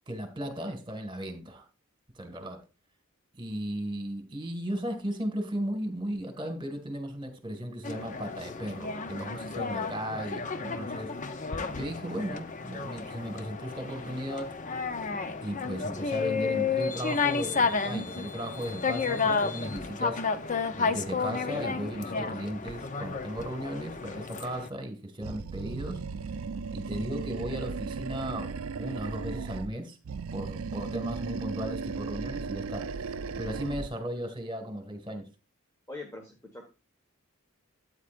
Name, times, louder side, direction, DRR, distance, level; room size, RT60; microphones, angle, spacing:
voice 1, 0.1-1.6 2.1-2.6 3.3-11.1 11.7-14.5 15.4-20.2 20.7-26.0 26.7-30.0 30.3-32.9 33.4-35.3, equal, 25° right, 2.0 m, -36 dB
sound 1, 7.8-24.7, left 4 dB, 35° left, 0.7 m, -32 dB
Animal, 25.2-29.7 30.0-34.0, right 4 dB, 85° right, 0.5 m, -36 dB
voice 2, 35.9-36.7, left 2 dB, 15° left, 1.5 m, -42 dB
13.0 x 8.9 x 2.5 m
head